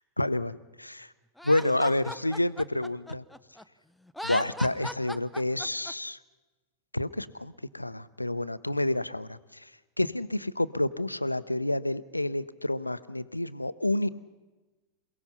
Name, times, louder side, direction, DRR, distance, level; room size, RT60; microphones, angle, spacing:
voice 1, 0.2-1.1 1.4-3.2 4.2-6.2 6.9-9.7 10.0-14.1, left 1 dB, 85° left, 17 dB, 0.7 m, -29 dB
Laughter, 1.4-3.6 4.1-5.9, left 1 dB, ahead, 0.8 m, -38 dB
28.0 x 17.5 x 5.7 m, 1.2 s
figure-of-eight pair, 90°, 0 cm